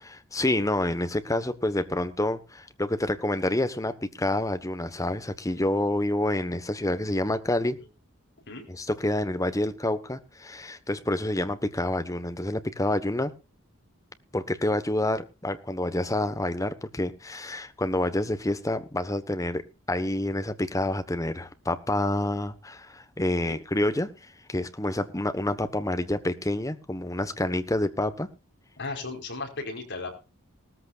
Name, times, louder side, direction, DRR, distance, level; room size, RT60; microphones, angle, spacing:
voice 1, 0.0-7.8 8.7-13.3 14.3-24.1 24.5-28.3, left 1 dB, 15° left, 1.2 m, -28 dB
voice 2, 28.8-30.1, left 3 dB, 55° left, 5.0 m, -35 dB
19.0 x 14.0 x 2.5 m
head